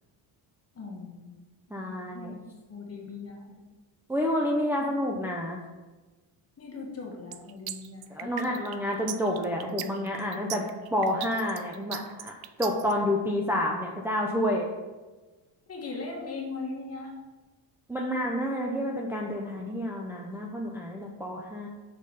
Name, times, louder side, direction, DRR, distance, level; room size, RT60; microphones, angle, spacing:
voice 1, 0.7-1.4 1.7-2.4 2.7-3.7 6.6-8.6 15.7-17.1, left 3 dB, 30° left, -1 dB, 1.8 m, -39 dB
voice 2, 1.7-2.3 4.1-5.6 8.1-10.6 10.9-12.3 12.6-14.7 17.9-21.7, left 1 dB, 5° right, -2 dB, 0.7 m, -29 dB
sound 1, 7.3-12.9, right 12 dB, 55° right, 0.5 m, -38 dB
6.6 x 4.9 x 5.4 m, 1.2 s
cardioid pair, 125°, 45 cm